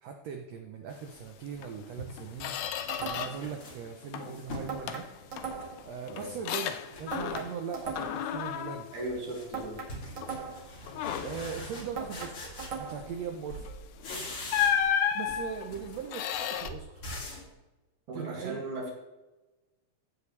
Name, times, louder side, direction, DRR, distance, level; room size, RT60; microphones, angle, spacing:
voice 1, 0.0-5.1 5.8-8.9 10.8-10.9 11.2-13.7 15.1-17.0 18.1-18.6, right 6 dB, 75° right, 4 dB, 1.5 m, -40 dB
sound 1, 1.3-1.4 2.0-4.8 5.2-6.3 6.6-7.4 7.8-8.2 8.5-13.2 13.5-15.0 15.3-17.5, left 1 dB, 40° left, 3.1 m, -44 dB
Squeak, 1.6-1.7 2.1-3.5 3.9-4.4 4.9-7.7 8.0-9.8 10.2-10.4 10.9-11.5 13.6-13.8 14.5-16.7, left 9 dB, 80° left, 1.6 m, -33 dB
sound 2, 2.9-3.5 4.7-5.9 7.1-8.3 9.5-10.8 12.0-13.2, right 5 dB, 40° right, 1.9 m, -39 dB
voice 2, 8.9-9.8 18.1-18.9, right 2 dB, 60° right, -3 dB, 3.5 m, -37 dB
15.5 x 8.3 x 3.3 m, 1.1 s
omnidirectional pair, 4.0 m